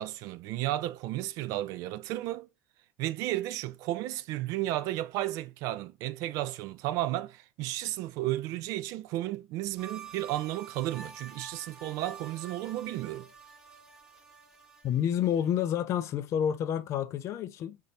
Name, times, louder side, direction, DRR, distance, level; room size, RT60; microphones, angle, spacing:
voice 1, 0.0-2.5 3.0-13.3, right 15 dB, 50° right, 0.4 m, -33 dB
sound 1, 9.8-15.6, right 6 dB, 5° right, 1.2 m, -48 dB
voice 2, 14.8-17.8, left 9 dB, 40° left, 0.4 m, -29 dB
4.0 x 2.7 x 4.0 m
figure-of-eight pair, 70°, 8 cm